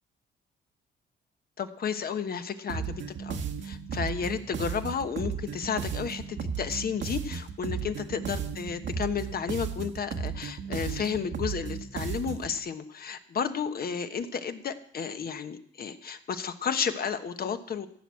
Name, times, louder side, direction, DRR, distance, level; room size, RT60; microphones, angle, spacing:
voice 1, 1.6-17.9, left 6 dB, 50° left, 9 dB, 1.2 m, -32 dB
sound 1, 2.7-12.5, right 6 dB, 65° right, 1.4 m, -34 dB
15.0 x 6.2 x 8.5 m, 0.66 s
cardioid pair, 90°, 20 cm